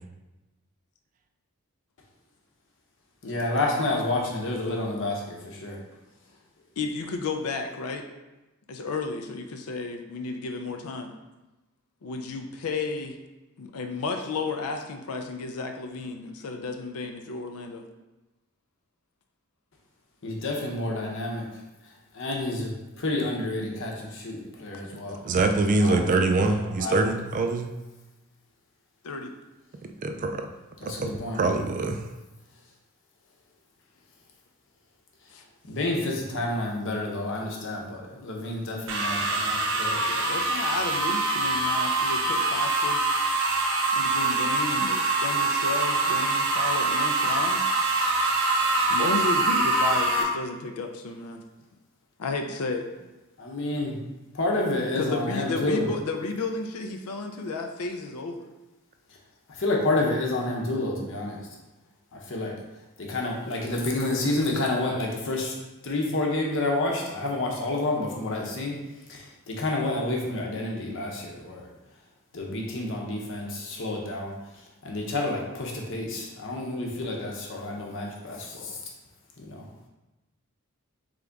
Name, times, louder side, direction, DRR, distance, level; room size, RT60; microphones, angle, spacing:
voice 1, 3.2-5.8 20.2-21.5 22.1-22.7 23.0-25.2 25.8-27.1 30.8-31.4 35.7-40.0 53.4-54.0 54.3-55.8 59.6-61.4 62.3-62.5 63.0-65.5 65.8-68.7 69.1-71.6 72.3-74.3 74.8-78.7 79.4-79.6, left 2 dB, 60° left, -1 dB, 0.9 m, -29 dB
voice 2, 6.8-8.1 8.7-11.1 12.0-13.2 13.6-17.8 29.0-29.3 35.3-35.4 39.9-43.3 43.9-47.7 48.9-51.4 52.2-52.9 54.9-58.5, left 3 dB, 80° left, 5 dB, 0.5 m, -32 dB
voice 3, 25.2-27.7 30.0-30.5 31.0-32.0, right 3 dB, 35° right, 5 dB, 0.3 m, -24 dB
sound 1, 38.9-50.2, right 3 dB, 55° right, 0.7 m, -24 dB
3.8 x 3.4 x 3.5 m, 1.1 s
head